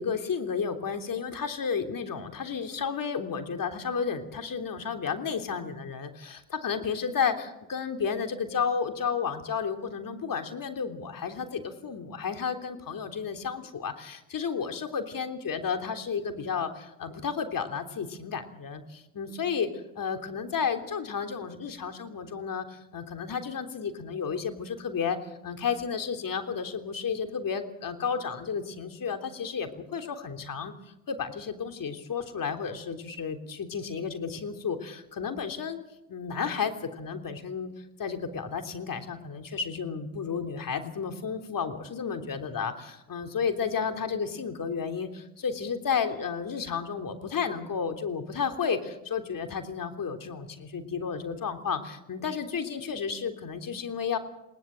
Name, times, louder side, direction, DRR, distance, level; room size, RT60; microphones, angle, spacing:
voice 1, 0.0-30.7 31.1-35.8 36.1-54.2, left 6 dB, 45° left, 6 dB, 3.4 m, -32 dB
20.5 x 20.5 x 7.8 m, 0.88 s
hypercardioid pair, 65°, 48 cm